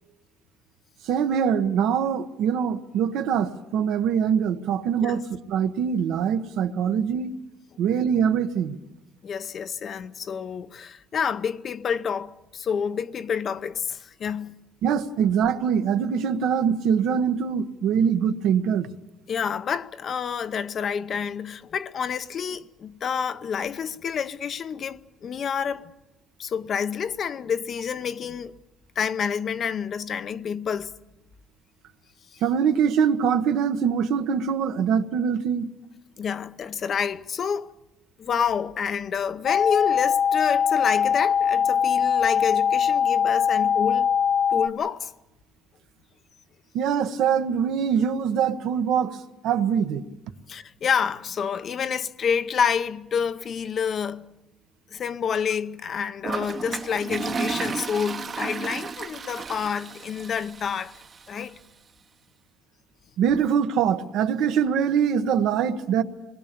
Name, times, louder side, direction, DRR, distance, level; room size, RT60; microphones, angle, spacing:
voice 1, 1.0-7.3 7.8-8.8 14.8-18.9 32.4-35.7 46.7-49.2 49.4-50.0 63.2-66.0, right 7 dB, 70° right, 1.3 m, -23 dB
voice 2, 9.2-14.6 19.3-25.9 26.4-28.5 29.0-30.9 36.2-37.7 38.2-44.1 44.5-45.1 50.5-54.3 54.9-60.9 61.3-61.6, left 7 dB, 40° left, 0.7 m, -28 dB
sound 1, 39.5-44.7, left 7 dB, 75° left, 2.6 m, -21 dB
Toilet flush, 56.2-61.3, right 5 dB, 30° right, 1.0 m, -33 dB
27.5 x 20.5 x 6.9 m
cardioid pair, 145°, 0 cm